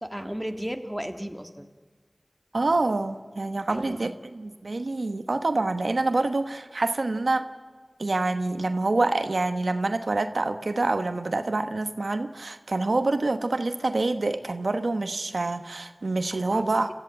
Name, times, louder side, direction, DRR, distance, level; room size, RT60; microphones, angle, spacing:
voice 1, 0.0-1.7 3.7-4.0 16.3-16.8, equal, 5° right, 6 dB, 1.7 m, -35 dB
voice 2, 2.5-7.4 8.0-16.9, right 2 dB, 85° right, 8 dB, 1.1 m, -26 dB
29.5 x 14.5 x 8.7 m, 1.5 s
wide cardioid pair, 50°, 0 cm